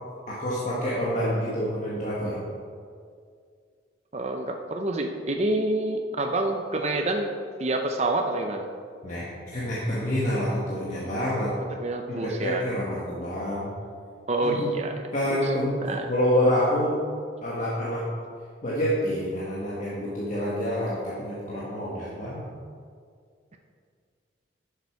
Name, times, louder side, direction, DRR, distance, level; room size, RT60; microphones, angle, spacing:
voice 1, 0.3-2.4 9.0-11.5 12.1-13.7 14.4-14.7 15.1-15.8 16.1-17.0 17.4-18.1 18.6-22.4, equal, 40° left, -7 dB, 1.5 m, -27 dB
voice 2, 4.1-7.3 7.6-8.7 11.7-12.7 14.3-14.9 15.4-15.5 15.8-16.0, right 2 dB, 35° right, 3 dB, 0.7 m, -27 dB
11.5 x 6.8 x 4.7 m, 2.1 s
head